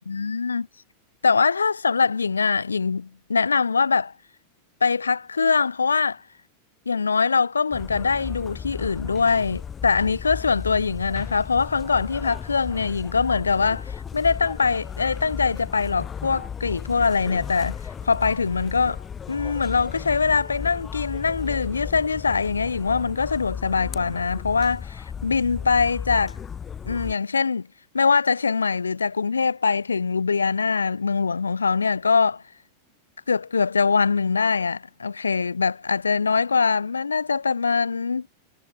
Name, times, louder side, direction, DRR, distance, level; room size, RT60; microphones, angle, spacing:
voice 1, 0.1-0.7 1.2-4.1 4.8-6.2 6.9-26.4 26.8-27.7 27.9-32.4 33.3-38.3, left 5 dB, 75° left, 0.9 m, -23 dB
sound 1, 7.7-27.1, left 7 dB, 20° left, 1.5 m, -35 dB
figure-of-eight pair, 90°, 0 cm